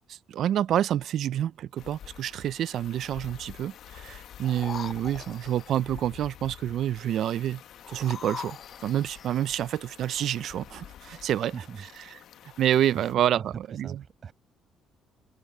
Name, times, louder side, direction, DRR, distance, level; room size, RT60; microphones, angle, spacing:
voice 1, 0.1-7.6 7.9-8.6 8.8-11.5 12.6-14.0, right 11 dB, 60° right, 0.4 m, -28 dB
sound 1, 1.8-13.1, left 10 dB, 65° left, 1.2 m, -48 dB
sound 2, 4.4-5.8 7.8-9.5 10.1-10.2, left 7 dB, 40° left, 0.7 m, -41 dB
voice 2, 11.5-11.8 12.9-14.3, right 6 dB, 35° right, 7.1 m, -41 dB
cardioid pair, 145°, 0 cm